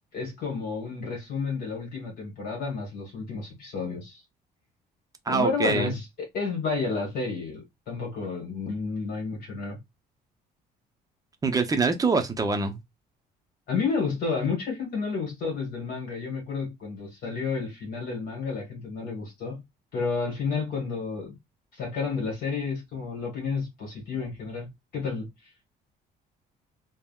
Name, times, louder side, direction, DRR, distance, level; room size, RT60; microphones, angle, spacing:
voice 1, 0.1-4.2 5.3-9.8 13.7-19.6 19.9-21.3 21.7-25.3, left 4 dB, 65° left, 1.3 m, -31 dB
voice 2, 5.3-5.9 11.4-12.8, right 4 dB, 20° right, 0.5 m, -24 dB
3.5 x 2.1 x 2.2 m
cardioid pair, 110°, 17 cm